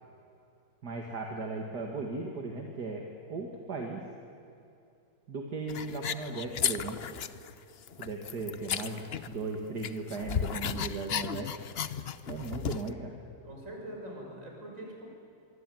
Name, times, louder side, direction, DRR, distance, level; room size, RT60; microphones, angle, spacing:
voice 1, 0.8-4.0 5.3-7.0 8.0-9.0 9.3-11.6 12.3-13.1, right 3 dB, 70° right, 1 dB, 2.6 m, -37 dB
sound 1, 5.7-7.5 7.8-9.5 9.8-12.9, left 8 dB, 50° left, 0.8 m, -34 dB
voice 2, 13.4-15.1, right 1 dB, 45° right, 0 dB, 6.6 m, -43 dB
25.0 x 23.5 x 9.3 m, 2.7 s
omnidirectional pair, 1.8 m